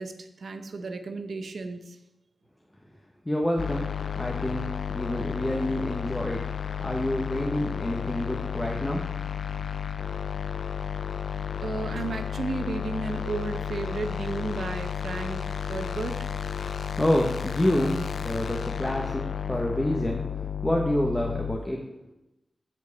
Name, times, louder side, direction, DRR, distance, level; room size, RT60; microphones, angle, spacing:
voice 1, 0.0-2.0 11.6-16.2, right 3 dB, 80° right, 8 dB, 0.8 m, -33 dB
voice 2, 3.2-3.9 4.1-4.7 4.9-6.4 6.8-9.1 17.0-21.8, left 1 dB, 15° left, 0 dB, 1.1 m, -28 dB
sound 1, 3.6-21.6, left 8 dB, 80° left, 0.4 m, -32 dB
8.0 x 4.5 x 7.1 m, 0.93 s
cardioid pair, 60°, 0 cm